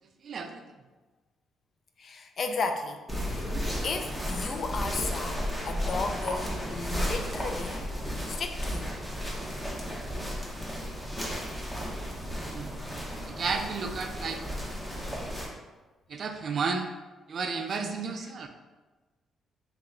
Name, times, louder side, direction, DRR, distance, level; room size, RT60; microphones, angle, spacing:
voice 1, 0.2-0.6 12.4-12.8 13.3-14.4 16.1-16.9 17.3-18.5, right 5 dB, 55° right, 6 dB, 0.3 m, -32 dB
voice 2, 2.0-3.0 3.3-3.5 3.8-7.9 8.3-8.9 17.8-17.9, left 4 dB, 50° left, 5 dB, 0.4 m, -34 dB
sound 1, 3.1-15.5, equal, 5° left, 0.9 m, -34 dB
3.2 x 2.9 x 3.7 m, 1.2 s
cardioid pair, 90°, 0 cm